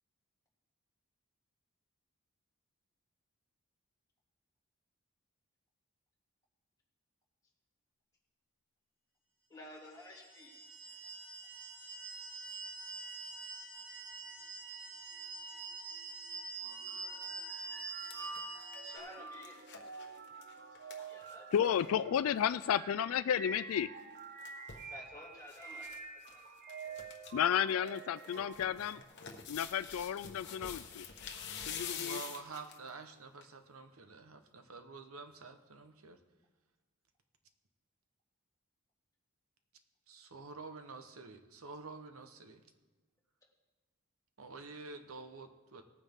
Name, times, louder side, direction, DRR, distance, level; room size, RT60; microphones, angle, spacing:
voice 1, 9.5-11.0 18.8-19.9 21.1-21.5 24.9-26.5, left 2 dB, 15° left, -4 dB, 2.5 m, -53 dB
sound 1, 10.0-19.0, right 3 dB, 10° right, 2.8 m, -45 dB
sound 2, 16.6-29.0, right 4 dB, 40° right, 0.7 m, -48 dB
sound 3, 17.0-17.2 17.6-21.9 22.2-22.3 22.4-22.7 24.0-24.9 25.5-26.0 26.2-26.3 26.7-27.3 27.7-32.9 33.4-33.5, left 7 dB, 50° left, 1.2 m, -47 dB
voice 2, 21.5-23.9 27.3-29.0 29.5-31.1 31.7-32.2, left 9 dB, 75° left, 15 dB, 0.3 m, -32 dB
voice 3, 31.9-36.2 40.1-42.6 44.4-45.8, right 4 dB, 75° right, 8 dB, 1.0 m, -49 dB
18.5 x 9.2 x 3.6 m, 1.3 s
head